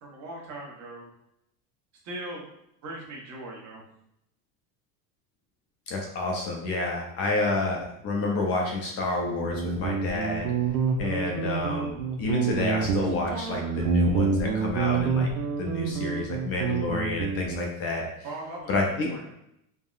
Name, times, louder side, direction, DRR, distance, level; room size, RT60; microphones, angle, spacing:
voice 1, 0.0-1.1 2.0-2.5 2.8-3.8 18.2-19.3, right 1 dB, 40° right, -2 dB, 0.9 m, -39 dB
voice 2, 5.9-10.5 11.0-15.3 15.6-18.1 18.7-19.1, left 2 dB, 35° left, 0 dB, 0.4 m, -29 dB
Guitar, 9.2-17.7, right 5 dB, 85° right, 0.6 m, -27 dB
3.6 x 2.0 x 2.3 m, 0.79 s
supercardioid pair, 145°, 44 cm